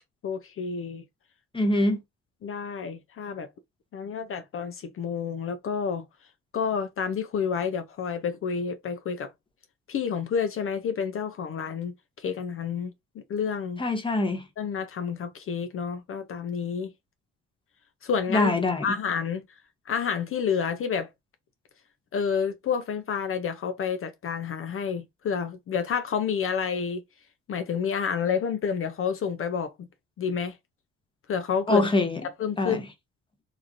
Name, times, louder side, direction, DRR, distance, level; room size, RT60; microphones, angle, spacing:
voice 1, 0.2-1.0 2.4-3.5 3.9-6.1 6.5-9.3 9.9-12.9 13.3-13.8 14.6-16.9 18.0-18.5 18.8-19.4 19.9-21.1 22.1-27.0 27.5-29.9 30.2-30.6 31.3-31.9 32.2-32.8, left 6 dB, 45° left, 0.4 m, -29 dB
voice 2, 1.5-2.0 13.8-14.4 18.3-18.8 31.7-32.2 32.6-32.8, left 2 dB, 15° left, 0.9 m, -24 dB
2.9 x 2.6 x 2.5 m
cardioid pair, 90°, 30 cm